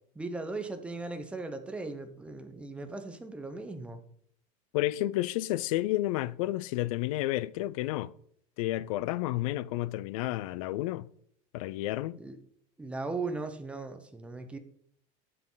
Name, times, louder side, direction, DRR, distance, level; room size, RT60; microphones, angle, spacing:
voice 1, 0.1-4.0 12.2-12.4 12.8-14.6, right 3 dB, 5° right, 0.8 m, -38 dB
voice 2, 4.7-8.1 8.6-11.1 11.5-12.2, left 16 dB, 85° left, 0.5 m, -31 dB
11.0 x 8.5 x 3.9 m
cardioid pair, 170°, 17 cm